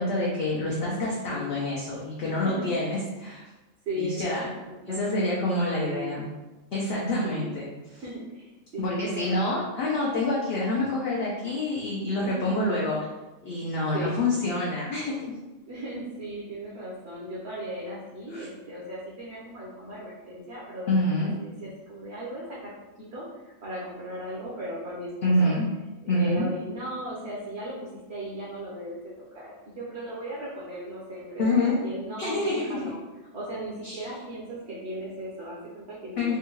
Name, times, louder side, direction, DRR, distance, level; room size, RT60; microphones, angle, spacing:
voice 1, 0.0-3.5 4.0-4.5 5.0-6.2 6.7-7.7 8.8-13.0 13.4-15.1 18.3-18.5 20.9-21.3 25.2-25.7 26.1-26.4 31.4-31.8 32.2-32.9 33.8-34.0 36.2-36.4, left 2 dB, 60° left, -5 dB, 0.7 m, -27 dB
voice 2, 2.2-2.7 3.9-6.2 7.2-7.5 7.9-9.4 12.2-12.7 13.9-14.2 15.7-25.5 26.0-29.0 29.3-33.0 33.3-36.4, right 1 dB, 60° right, -6 dB, 1.0 m, -37 dB
3.6 x 2.2 x 2.9 m, 1.1 s
omnidirectional pair, 1.3 m